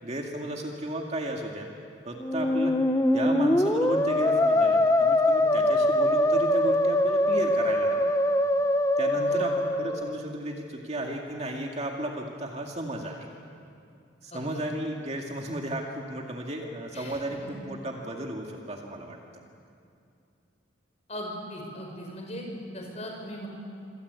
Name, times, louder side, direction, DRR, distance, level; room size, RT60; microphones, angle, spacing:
voice 1, 0.0-1.7 2.1-2.7 3.1-8.1 9.0-13.3 14.2-19.2, right 1 dB, 30° right, 1 dB, 2.2 m, -34 dB
Musical instrument, 2.2-10.2, left 1 dB, 15° left, 0.9 m, -23 dB
voice 2, 9.1-9.5 14.3-14.6 16.9-17.6 21.1-23.5, equal, 35° left, 1 dB, 6.0 m, -39 dB
26.5 x 26.5 x 8.3 m, 2.4 s
head